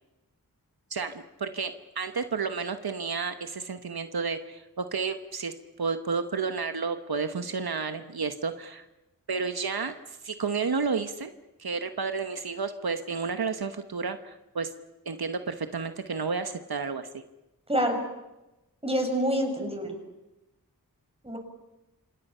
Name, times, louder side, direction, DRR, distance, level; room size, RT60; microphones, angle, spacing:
voice 1, 0.9-8.8 9.3-11.3 11.6-14.7 15.0-17.1, right 5 dB, 80° right, 8 dB, 1.2 m, -31 dB
voice 2, 17.7-18.0 18.8-19.9 21.2-21.4, equal, 15° right, 3 dB, 5.9 m, -27 dB
28.0 x 26.5 x 5.7 m, 0.98 s
wide cardioid pair, 70°, 36 cm